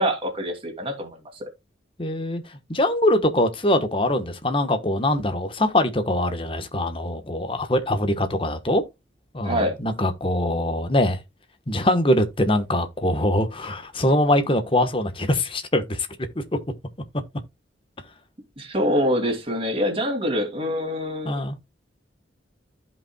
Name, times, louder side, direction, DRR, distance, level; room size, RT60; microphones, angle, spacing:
voice 1, 0.0-1.5 9.4-9.8 18.6-21.4, equal, 30° right, 2.6 m, -25 dB
voice 2, 2.0-2.4 2.7-8.8 9.3-11.2 11.7-16.1 16.3-16.4 21.2-21.6, left 1 dB, 30° left, 1.2 m, -23 dB
14.5 x 5.5 x 2.3 m
head